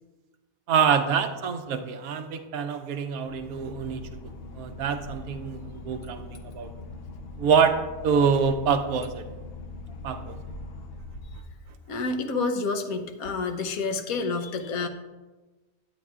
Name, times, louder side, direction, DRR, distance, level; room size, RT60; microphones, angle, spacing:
voice 1, 0.7-4.0 4.5-6.7 7.4-7.8 8.0-9.2 10.0-10.4, right 6 dB, 85° right, 7 dB, 1.1 m, -25 dB
Boat Water vehicle / Engine, 3.2-12.1, left 2 dB, 55° left, 0.7 m, -42 dB
voice 2, 11.9-14.9, left 3 dB, 80° left, 5 dB, 1.2 m, -29 dB
9.8 x 8.8 x 2.4 m, 1.2 s
omnidirectional pair, 1.5 m